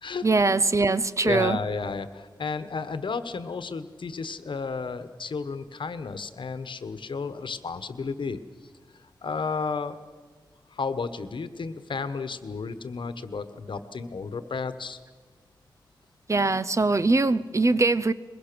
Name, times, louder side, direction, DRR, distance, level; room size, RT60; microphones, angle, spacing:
voice 1, 0.2-1.6 16.3-18.1, right 3 dB, 40° right, 15 dB, 0.7 m, -22 dB
voice 2, 1.2-8.4 9.2-10.0 10.7-15.0, left 4 dB, 85° left, 11 dB, 1.2 m, -32 dB
22.5 x 22.0 x 6.9 m, 1.4 s
wide cardioid pair, 100°, 8 cm